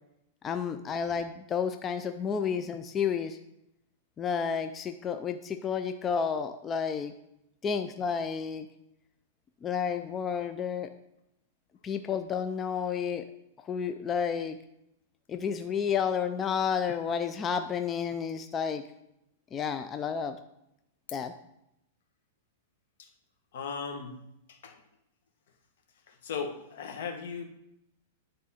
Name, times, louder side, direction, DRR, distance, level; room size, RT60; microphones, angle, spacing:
voice 1, 0.4-3.4 4.2-7.1 7.6-8.7 9.6-10.9 11.8-13.2 13.7-14.6 15.3-18.8 19.5-20.4 21.1-21.3, left 7 dB, 20° left, 8 dB, 0.3 m, -31 dB
voice 2, 23.5-24.2 24.5-24.8 26.1-27.4, left 5 dB, 70° left, 4 dB, 1.3 m, -37 dB
9.9 x 3.7 x 4.3 m, 0.82 s
supercardioid pair, 160°, 0 cm